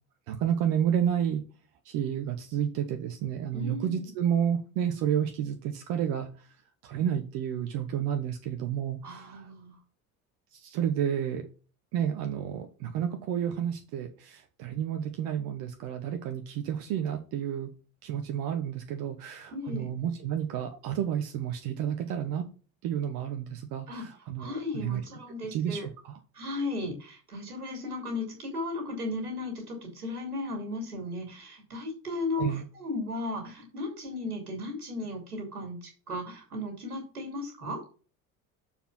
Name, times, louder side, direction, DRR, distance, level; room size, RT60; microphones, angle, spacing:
voice 1, 0.3-1.4 1.8-6.3 6.8-9.5 10.5-11.5 11.9-17.7 18.0-22.4 22.8-25.0 25.5-26.1 32.4-32.6, right 9 dB, 50° right, 6 dB, 1.1 m, -30 dB
voice 2, 3.5-4.0 9.0-9.8 19.5-19.9 23.9-24.0 24.4-25.8 26.3-37.8, left 2 dB, 80° right, 2 dB, 2.8 m, -35 dB
7.1 x 4.6 x 5.6 m, 0.36 s
figure-of-eight pair, 65°, 45 cm